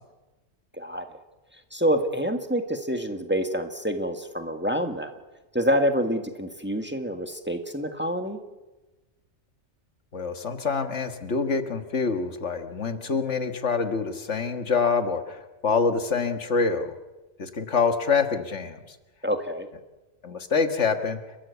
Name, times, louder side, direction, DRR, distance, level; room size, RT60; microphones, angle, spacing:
voice 1, 0.7-1.2 1.5-5.1 5.5-8.4 19.2-19.7, equal, 10° right, 6 dB, 1.7 m, -27 dB
voice 2, 10.1-16.9 17.4-18.8 20.2-21.2, left 5 dB, 75° left, 8 dB, 1.8 m, -26 dB
30.0 x 13.5 x 8.2 m, 1.1 s
omnidirectional pair, 1.2 m